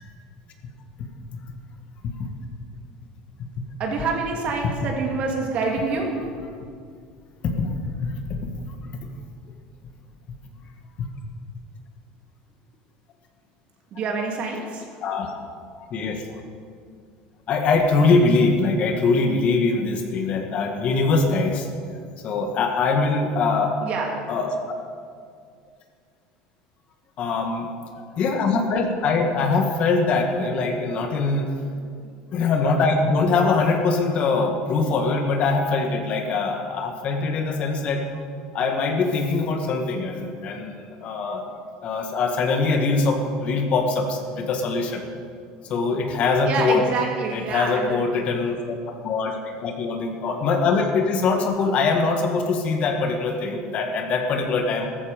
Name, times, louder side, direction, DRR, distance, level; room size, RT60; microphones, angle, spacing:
voice 1, 3.8-6.2 13.9-14.9 23.8-24.2 46.4-48.2, right 4 dB, 45° right, 0 dB, 2.8 m, -27 dB
voice 2, 7.4-7.8 8.0-8.8 15.0-15.3 15.8-16.4 17.5-21.7 22.2-23.8 24.3-24.8 27.2-27.7 28.2-31.5 32.3-38.0 38.5-41.4 41.8-45.1 45.7-46.8 47.3-54.9, left 4 dB, 45° left, 4 dB, 1.7 m, -23 dB
14.5 x 13.5 x 5.2 m, 2.2 s
cardioid pair, 140°, 3 cm